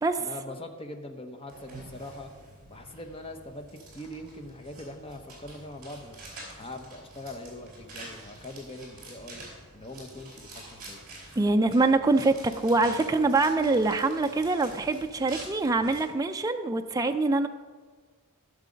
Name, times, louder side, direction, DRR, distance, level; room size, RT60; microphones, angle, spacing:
voice 1, 0.2-2.3 2.7-6.2 6.6-9.4 9.7-11.0, left 1 dB, 25° left, 5 dB, 0.9 m, -42 dB
sound 1, 1.5-16.0, right 2 dB, 40° right, 4.0 m, -47 dB
voice 2, 11.4-17.5, right 3 dB, 15° right, 6 dB, 0.4 m, -24 dB
14.5 x 6.5 x 5.1 m, 1.5 s
head